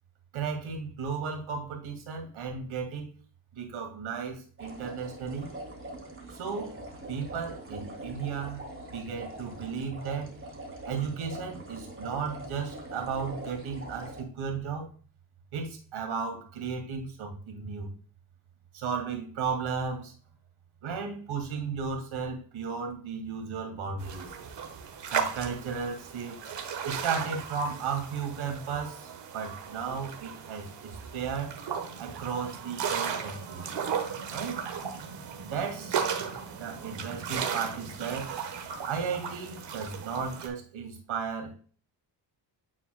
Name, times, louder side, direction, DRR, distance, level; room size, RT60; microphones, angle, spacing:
voice 1, 0.3-3.1 3.5-5.5 6.3-6.7 7.1-8.6 8.9-10.3 10.8-14.9 15.5-17.9 18.7-20.1 20.8-24.3 25.1-26.4 26.8-31.5 32.0-33.6 34.3-34.6 35.4-36.2 36.6-38.3 38.8-41.5, right 5 dB, 85° right, 2 dB, 2.1 m, -34 dB
sound 1, 4.6-14.2, right 1 dB, 25° right, 2.7 m, -43 dB
sound 2, 24.0-40.5, right 7 dB, 65° right, 1.3 m, -36 dB
9.9 x 4.3 x 2.2 m, 0.40 s
cardioid pair, 95°, 47 cm